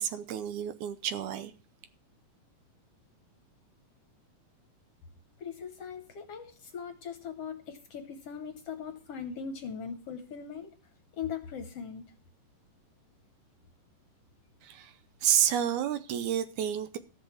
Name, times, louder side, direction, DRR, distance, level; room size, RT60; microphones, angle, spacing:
voice 1, 0.0-1.5 14.6-14.9 15.2-17.0, right 9 dB, 75° right, 2.1 m, -29 dB
voice 2, 5.4-10.7 11.1-12.0, left 7 dB, 65° left, 1.7 m, -40 dB
13.5 x 6.6 x 7.1 m
omnidirectional pair, 3.7 m